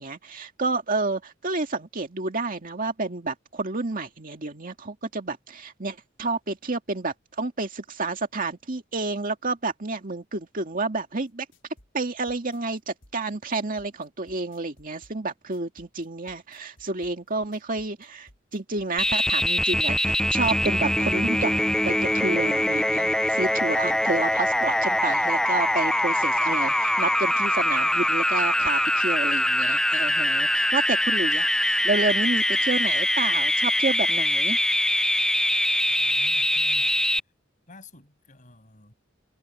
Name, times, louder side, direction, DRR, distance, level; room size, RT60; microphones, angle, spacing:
voice 1, 0.0-11.5 11.9-34.6, right 3 dB, 45° right, 2.2 m, -30 dB
sound 1, 11.3-19.2, left 1 dB, 65° left, 5.6 m, -57 dB
sound 2, 19.0-37.2, left 1 dB, 5° left, 0.4 m, -23 dB
voice 2, 36.0-37.1 37.7-38.9, left 2 dB, 40° left, 6.9 m, -51 dB
head